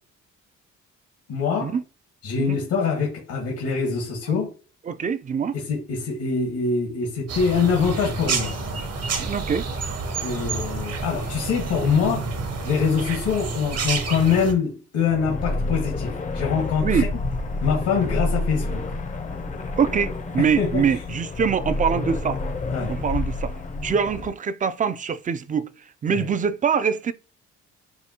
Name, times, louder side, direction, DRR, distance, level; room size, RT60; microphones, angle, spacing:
voice 1, 1.3-1.7 2.2-4.5 5.5-8.5 10.2-12.3 12.6-17.1 17.6-18.8 20.4-21.0 22.7-23.0 23.8-23.9 26.1-26.3, left 6 dB, 80° left, 1.5 m, -24 dB
voice 2, 4.9-5.5 9.2-9.7 16.8-17.1 19.8-22.4 22.9-23.5 23.8-25.7 26.0-27.1, right 6 dB, 25° right, 0.4 m, -24 dB
sound 1, 7.3-14.5, right 4 dB, 55° right, 0.9 m, -29 dB
sound 2, 15.0-24.3, left 2 dB, 25° left, 0.5 m, -29 dB
4.9 x 2.2 x 2.8 m
cardioid pair, 90°, 30 cm